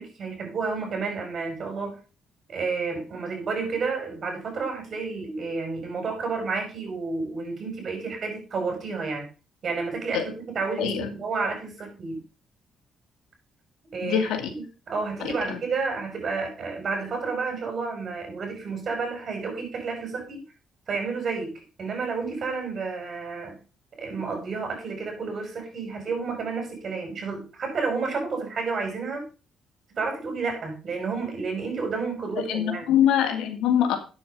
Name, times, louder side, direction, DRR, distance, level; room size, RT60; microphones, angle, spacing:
voice 1, 0.0-1.9 2.5-9.3 9.6-12.2 13.9-20.4 20.9-23.6 24.0-29.2 30.0-33.0, right 4 dB, 50° right, 3 dB, 5.7 m, -31 dB
voice 2, 10.8-11.1 14.0-14.5 15.2-15.6 32.5-34.0, left 9 dB, 85° left, 6 dB, 2.3 m, -24 dB
9.3 x 7.2 x 5.4 m, 0.34 s
cardioid pair, 90°, 0 cm